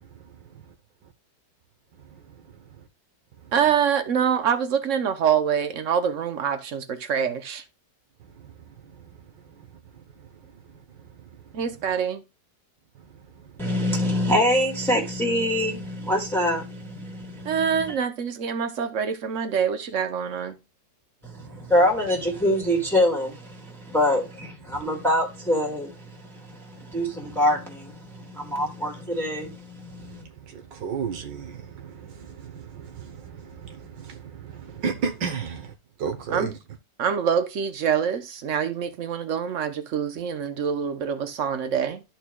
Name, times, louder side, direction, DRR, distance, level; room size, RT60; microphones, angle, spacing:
voice 1, 0.2-0.7 2.0-2.9 3.4-3.5 8.3-11.9 12.9-13.8 17.4-17.5 21.4-21.7 24.7-24.8 28.5-28.6 30.0-36.6, right 6 dB, 80° right, 1.6 m, -36 dB
voice 2, 3.5-7.6 11.5-12.2 17.4-20.6 36.3-36.5 37.0-42.0, right 7 dB, 55° right, 1.0 m, -25 dB
voice 3, 13.6-17.9 21.2-30.2, left 1 dB, ahead, 1.7 m, -25 dB
13.0 x 4.5 x 2.3 m
omnidirectional pair, 2.0 m